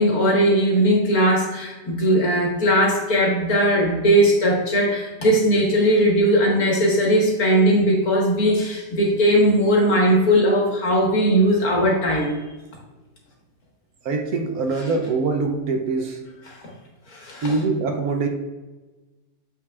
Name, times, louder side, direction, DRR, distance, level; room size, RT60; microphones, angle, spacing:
voice 1, 0.0-12.4 16.5-16.6 17.1-17.5, equal, 60° left, -2 dB, 2.0 m, -19 dB
voice 2, 14.0-16.2 17.4-18.3, right 3 dB, 65° right, 4 dB, 1.1 m, -23 dB
7.2 x 6.4 x 2.4 m, 1.2 s
omnidirectional pair, 1.8 m